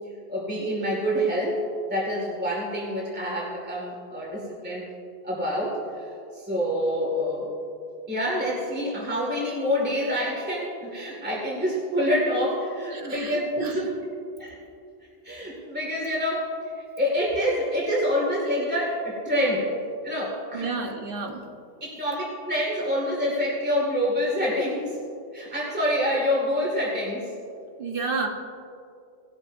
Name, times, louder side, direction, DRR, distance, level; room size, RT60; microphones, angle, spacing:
voice 1, 0.3-1.6 1.9-4.9 5.2-6.0 6.3-7.5 8.1-13.9 14.4-14.6 15.2-19.8 20.0-20.7 21.8-24.9 25.3-27.3, equal, 10° right, -5 dB, 2.1 m, -27 dB
voice 2, 12.9-13.7 20.5-21.5 27.8-28.3, right 4 dB, 55° right, 2 dB, 1.4 m, -31 dB
18.5 x 12.5 x 2.7 m, 2.5 s
omnidirectional pair, 1.1 m